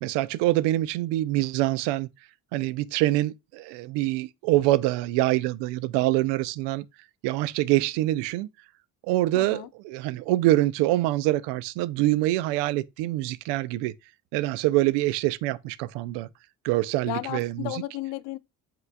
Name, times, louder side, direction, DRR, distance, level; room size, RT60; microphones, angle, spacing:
voice 1, 0.0-2.1 2.5-6.9 7.2-8.5 9.1-13.9 14.3-16.3 16.6-17.8, right 16 dB, 70° right, 0.5 m, -25 dB
voice 2, 9.3-9.7 17.1-18.4, left 18 dB, 65° left, 0.5 m, -33 dB
5.5 x 3.8 x 2.2 m
hypercardioid pair, 55°, 44 cm